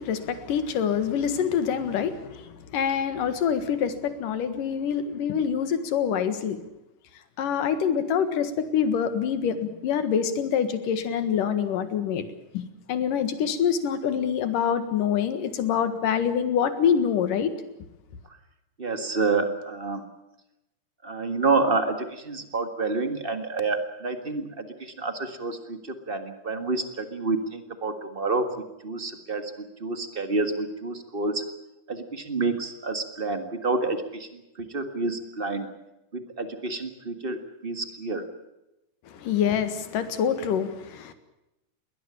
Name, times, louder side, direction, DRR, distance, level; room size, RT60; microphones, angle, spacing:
voice 1, 0.0-6.6 7.4-12.3 12.5-17.5 39.1-41.1, left 8 dB, 85° left, 11 dB, 3.3 m, -26 dB
voice 2, 18.8-20.0 21.0-28.5 28.8-29.5 29.8-31.4 31.9-34.3 34.7-35.7 36.1-38.2, right 3 dB, 30° right, 8 dB, 1.0 m, -28 dB
21.5 x 19.0 x 8.7 m, 0.92 s
omnidirectional pair, 3.7 m